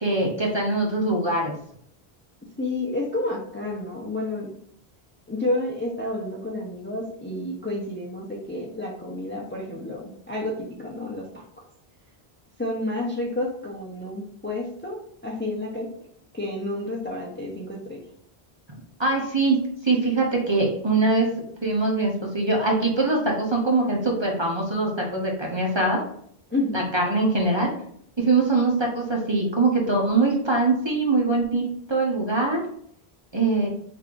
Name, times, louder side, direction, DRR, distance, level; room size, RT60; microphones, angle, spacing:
voice 1, 0.0-1.5 19.0-21.3 21.6-26.0 26.7-27.7 28.2-32.6 33.3-33.7, right 3 dB, 30° right, -1 dB, 0.8 m, -23 dB
voice 2, 2.6-4.5 5.3-11.4 12.6-15.9 16.3-18.0 26.5-26.8, left 1 dB, 15° left, -2 dB, 0.5 m, -30 dB
5.2 x 3.4 x 2.5 m, 0.67 s
omnidirectional pair, 1.0 m